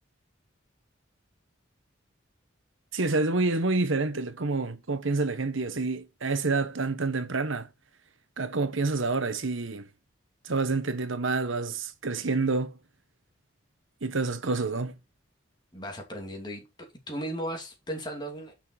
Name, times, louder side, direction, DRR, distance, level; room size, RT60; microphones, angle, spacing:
voice 1, 2.9-7.7 8.4-9.9 10.4-12.8 14.0-14.9, right 3 dB, 80° right, 1.1 m, -28 dB
voice 2, 15.7-16.6 17.1-18.5, right 1 dB, 20° left, 2.7 m, -36 dB
7.2 x 5.9 x 4.3 m
head